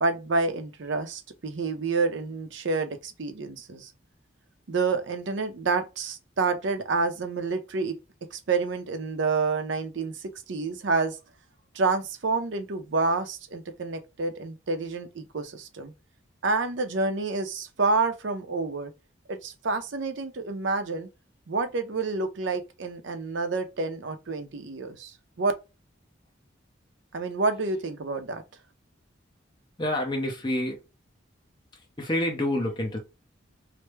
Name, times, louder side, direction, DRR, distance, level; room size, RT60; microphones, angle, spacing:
voice 1, 0.0-3.9 4.7-8.0 8.3-11.2 11.7-15.9 16.4-18.9 19.3-21.1 21.5-25.5 27.1-28.4, right 3 dB, 70° right, 0.6 m, -28 dB
voice 2, 29.8-30.8 31.7-33.0, left 1 dB, 25° left, 0.7 m, -28 dB
3.3 x 2.0 x 3.1 m
head